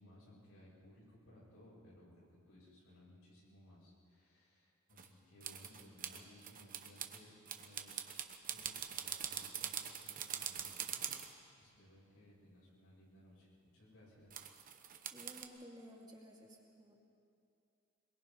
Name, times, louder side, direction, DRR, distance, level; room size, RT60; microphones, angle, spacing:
voice 1, 0.0-11.1 11.6-14.5, left 1 dB, 75° left, -6 dB, 7.6 m, -61 dB
sound 1, 5.0-5.1 5.4-7.2 7.5-11.3 14.3-15.4, right 9 dB, 40° right, 1.1 m, -43 dB
voice 2, 15.1-17.0, equal, 20° right, -2 dB, 2.5 m, -55 dB
23.5 x 22.5 x 5.6 m, 2.5 s
head